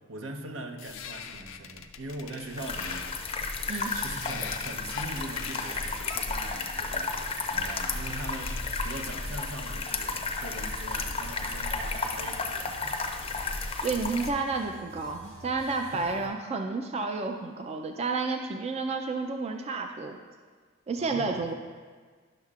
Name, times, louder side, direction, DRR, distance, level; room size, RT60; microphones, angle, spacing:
voice 1, 0.0-3.1 3.4-3.5 3.9-13.0 15.8-16.2 21.0-21.4, right 2 dB, 75° right, 5 dB, 0.7 m, -41 dB
sound 1, 0.8-9.3, left 7 dB, 80° left, 0.5 m, -43 dB
sound 2, 2.6-14.3, left 3 dB, 30° left, 0.5 m, -33 dB
sound 3, 10.8-16.3, equal, 55° right, 2.2 m, -51 dB
voice 2, 13.8-20.2 20.9-21.5, right 4 dB, 30° right, 4 dB, 0.4 m, -31 dB
11.5 x 6.4 x 2.4 m, 1.5 s
head